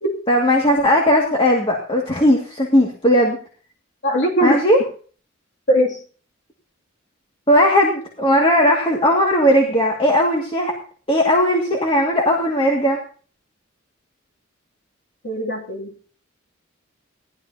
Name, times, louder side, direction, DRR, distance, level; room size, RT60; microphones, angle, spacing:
voice 1, 0.3-3.4 4.4-4.8 7.5-10.7 11.1-13.0, equal, 25° left, -1 dB, 2.1 m, -17 dB
voice 2, 4.0-4.6 5.7-6.0 15.2-15.9, right 1 dB, 60° left, -2 dB, 2.7 m, -20 dB
18.5 x 12.5 x 2.8 m, 0.41 s
head